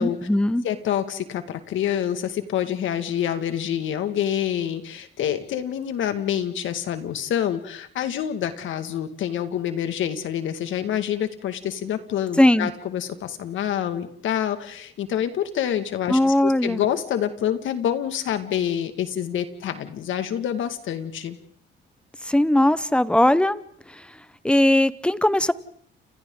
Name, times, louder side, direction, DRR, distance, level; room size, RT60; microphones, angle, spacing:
voice 1, 0.0-0.6 12.4-12.7 16.1-16.8 22.3-23.6 24.4-25.5, left 1 dB, 5° left, 15 dB, 1.1 m, -19 dB
voice 2, 0.6-21.4, left 10 dB, 75° left, 9 dB, 2.1 m, -27 dB
30.0 x 28.0 x 4.0 m, 0.64 s
cardioid pair, 90°, 20 cm